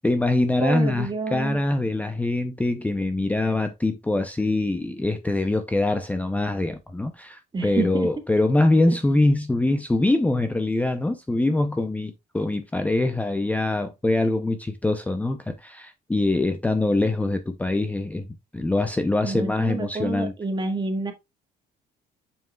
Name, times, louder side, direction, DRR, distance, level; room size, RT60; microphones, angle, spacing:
voice 1, 0.0-18.3 18.5-20.3, left 2 dB, 10° left, 0.6 m, -23 dB
voice 2, 0.6-1.6 7.5-8.1 8.9-9.0 19.2-21.1, right 3 dB, 25° right, 1.9 m, -28 dB
7.1 x 6.1 x 2.3 m
cardioid pair, 110°, 17 cm